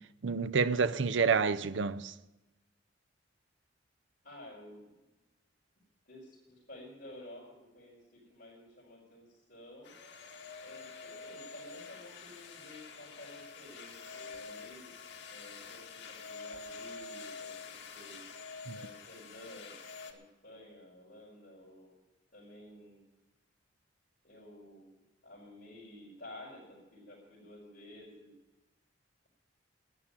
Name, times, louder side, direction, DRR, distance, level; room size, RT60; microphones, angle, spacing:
voice 1, 0.2-2.1 18.7-18.8, right 5 dB, 85° right, 0.6 m, -28 dB
voice 2, 4.2-5.0 6.1-9.9 10.6-14.9 15.3-17.5 17.9-18.2 18.7-19.8 20.0-21.9 22.3-23.0 24.2-25.0 25.2-28.3, left 1 dB, 50° left, 5.3 m, -52 dB
sound 1, 9.8-20.1, left 4 dB, 80° left, 1.8 m, -47 dB
12.5 x 9.8 x 9.0 m
head